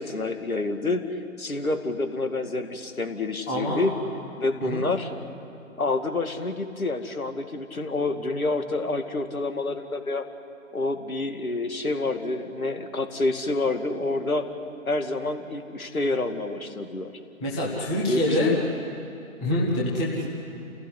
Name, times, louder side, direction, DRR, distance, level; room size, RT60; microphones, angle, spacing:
voice 1, 0.0-3.9 4.4-5.1 5.8-10.2 10.7-14.5 14.9-17.1 18.1-18.6, left 2 dB, 80° left, 7 dB, 2.5 m, -28 dB
voice 2, 3.5-3.9 4.6-4.8 17.4-18.5 19.4-20.3, left 1 dB, 5° left, -5 dB, 0.6 m, -26 dB
29.0 x 16.5 x 9.8 m, 2.8 s
figure-of-eight pair, 145°, 42 cm